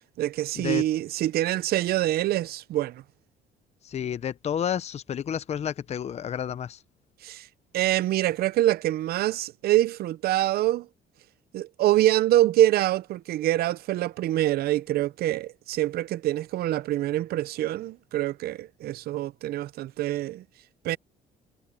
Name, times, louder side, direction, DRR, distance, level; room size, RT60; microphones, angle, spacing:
voice 1, 0.2-3.0 7.2-7.5 7.7-10.9 11.5-20.4 20.8-21.0, right 14 dB, 65° right, 0.6 m, -25 dB
voice 2, 3.8-6.8, left 9 dB, 40° left, 0.8 m, -30 dB
cardioid pair, 110°, 17 cm